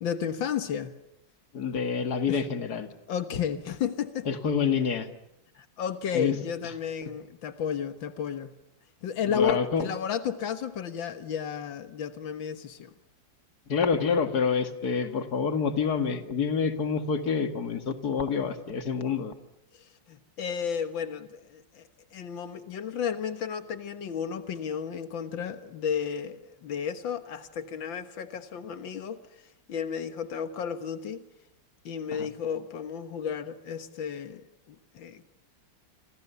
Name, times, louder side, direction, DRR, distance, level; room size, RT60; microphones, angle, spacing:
voice 1, 0.0-0.9 2.3-2.4 3.1-4.3 5.6-8.5 9.0-12.9 19.7-29.4 29.7-31.2 31.9-35.3, left 7 dB, 85° left, 10 dB, 2.1 m, -33 dB
voice 2, 1.5-2.9 4.3-5.1 6.1-6.4 9.3-9.9 13.7-19.3 32.1-32.3, left 6 dB, 55° left, 9 dB, 2.4 m, -27 dB
29.0 x 25.5 x 7.0 m, 0.79 s
omnidirectional pair, 2.0 m